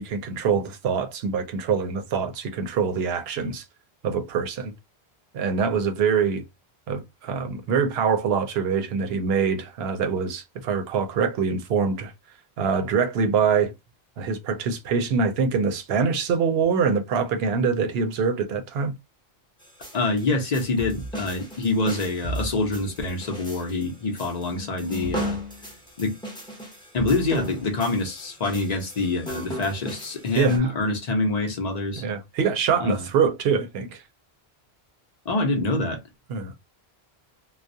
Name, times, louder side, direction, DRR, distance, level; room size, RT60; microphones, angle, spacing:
voice 1, 0.0-3.6 4.0-4.7 5.3-6.4 6.9-12.1 12.6-13.7 14.2-18.9 30.4-30.7 32.0-34.0 36.3-36.5, right 6 dB, 70° right, 0.8 m, -24 dB
sound 1, 19.6-30.6, equal, 5° left, 0.6 m, -36 dB
voice 2, 19.9-25.4 26.0-26.2 26.9-32.0 32.8-33.1 35.3-36.0, left 3 dB, 45° left, 0.6 m, -26 dB
2.3 x 2.0 x 2.6 m
omnidirectional pair, 1.1 m